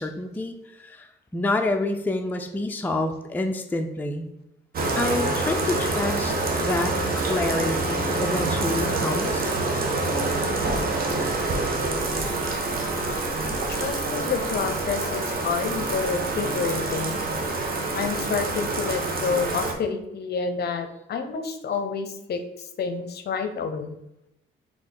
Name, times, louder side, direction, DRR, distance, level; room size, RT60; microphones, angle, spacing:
voice 1, 0.0-4.3 5.0-6.3 6.6-9.5, left 2 dB, 10° left, 4 dB, 0.4 m, -28 dB
Bathtub (filling or washing), 4.7-19.7, right 2 dB, 50° right, 0.8 m, -26 dB
voice 2, 13.7-17.2 18.0-23.9, left 5 dB, 55° left, 7 dB, 0.6 m, -29 dB
3.7 x 3.0 x 4.2 m, 0.84 s
cardioid pair, 90°, 20 cm